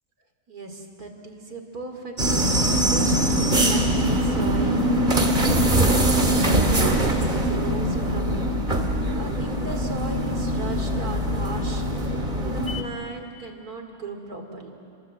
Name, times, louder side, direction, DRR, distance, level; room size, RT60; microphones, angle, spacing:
voice 1, 0.5-8.6 9.1-11.8 12.4-14.7, right 3 dB, 75° right, 4 dB, 3.3 m, -37 dB
sound 1, 2.2-12.8, right 1 dB, 35° right, 2.0 m, -22 dB
29.5 x 23.5 x 7.8 m, 2.5 s
omnidirectional pair, 1.6 m